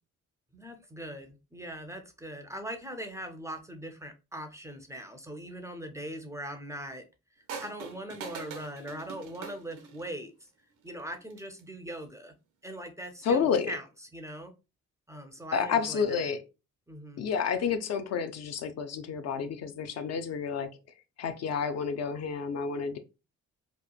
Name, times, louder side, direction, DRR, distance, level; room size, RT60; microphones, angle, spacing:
voice 1, 0.5-7.0 7.6-10.3 10.8-12.3 12.6-13.8 14.1-14.5 15.1-16.3 16.9-17.2, right 1 dB, 10° right, 0.4 m, -41 dB
sound 1, 7.5-10.2 11.2-11.6, right 5 dB, 85° right, 0.6 m, -43 dB
voice 2, 13.2-13.7 15.5-16.4 17.2-20.7 21.2-23.0, left 6 dB, 60° left, 0.4 m, -30 dB
2.9 x 2.1 x 2.3 m
cardioid pair, 90°, 30 cm